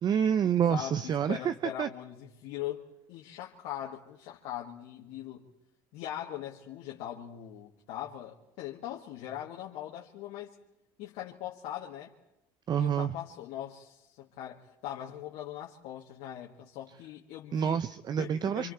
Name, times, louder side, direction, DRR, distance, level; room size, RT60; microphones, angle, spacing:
voice 1, 0.0-1.9 12.7-13.1 17.5-18.7, right 8 dB, 40° right, 0.7 m, -28 dB
voice 2, 0.7-5.5 5.9-10.6 11.0-12.1 12.8-17.8 18.2-18.7, left 11 dB, 75° left, 2.3 m, -41 dB
27.5 x 26.5 x 4.4 m
supercardioid pair, 105°, 11 cm